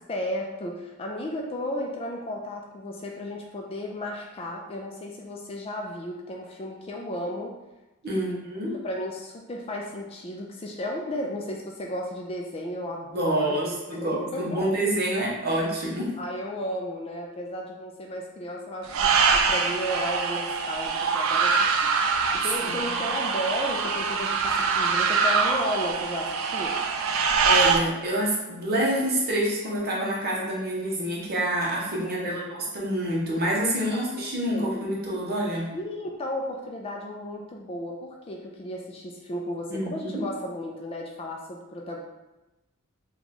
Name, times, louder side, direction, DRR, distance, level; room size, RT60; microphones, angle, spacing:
voice 1, 0.0-7.5 8.1-8.4 8.7-14.7 16.2-22.0 22.3-26.8 32.0-32.6 33.7-34.8 35.7-42.0, left 1 dB, 25° left, 0 dB, 0.3 m, -34 dB
voice 2, 8.0-8.8 13.1-16.1 22.6-22.9 27.4-35.7 39.7-40.2, right 1 dB, 45° right, -4 dB, 0.9 m, -27 dB
sound 1, 18.9-27.8, right 5 dB, 65° right, 0.3 m, -24 dB
3.0 x 2.3 x 4.0 m, 1.0 s
head